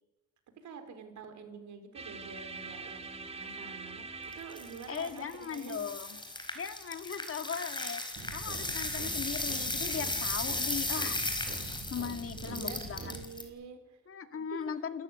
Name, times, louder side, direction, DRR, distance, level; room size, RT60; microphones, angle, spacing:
voice 1, 0.6-5.8 8.2-8.3 12.4-14.0 14.3-14.7, right 6 dB, 70° right, 8 dB, 4.4 m, -47 dB
sound 1, 1.9-7.9, right 4 dB, 20° right, 2.8 m, -46 dB
sound 2, 4.3-13.4, left 2 dB, 15° left, 4.5 m, -36 dB
voice 2, 4.9-6.2 6.5-8.0 8.3-11.2 11.9-13.1 14.1-15.0, left 7 dB, 45° left, 9 dB, 2.1 m, -38 dB
sound 3, 8.2-13.2, right 3 dB, 45° right, 7.8 m, -44 dB
27.0 x 14.0 x 9.8 m, 1.1 s
cardioid pair, 90°, 30 cm